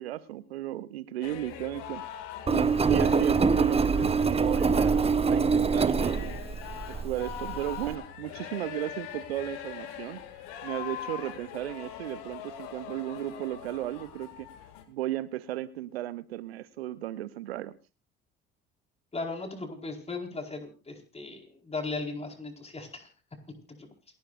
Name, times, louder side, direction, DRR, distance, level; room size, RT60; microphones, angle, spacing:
voice 1, 0.0-2.0 2.5-6.4 6.9-10.2 10.6-14.5 14.9-17.7, right 14 dB, 85° right, 16 dB, 0.8 m, -35 dB
sound 1, 1.2-14.8, left 10 dB, 70° left, 2.3 m, -42 dB
Engine, 2.5-7.9, right 5 dB, 20° right, 1.2 m, -25 dB
voice 2, 19.1-23.1 23.7-23.9, left 3 dB, 20° left, 3 dB, 4.8 m, -37 dB
28.0 x 12.0 x 2.6 m, 0.32 s
hypercardioid pair, 60°, 30 cm